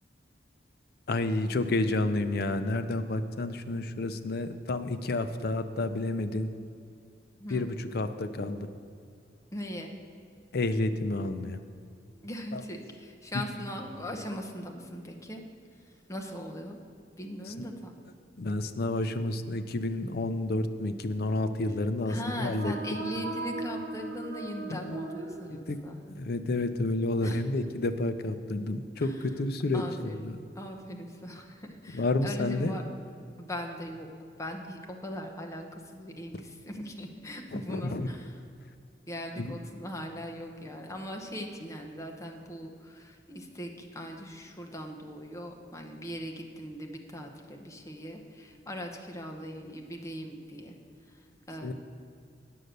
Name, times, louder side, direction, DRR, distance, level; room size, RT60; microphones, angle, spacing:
voice 1, 1.1-6.5 7.5-8.7 10.5-11.6 12.5-12.6 17.5-17.6 18.4-22.7 24.7-24.8 25.5-25.8 26.2-30.4 31.9-32.7 37.5-38.1 39.4-39.5 51.6-51.7, left 2 dB, 60° left, 10 dB, 0.5 m, -30 dB
voice 2, 7.4-7.7 9.5-10.0 12.2-15.4 15.8-16.8 17.2-17.9 22.1-26.0 27.2-27.4 29.0-29.2 29.7-30.3 30.5-32.8 33.4-34.1 34.4-38.4 39.1-50.7 51.0-51.7, equal, 20° left, 2 dB, 0.9 m, -40 dB
sound 1, 22.2-26.1, right 2 dB, 70° right, 0.8 m, -38 dB
9.5 x 6.4 x 6.6 m, 2.4 s
head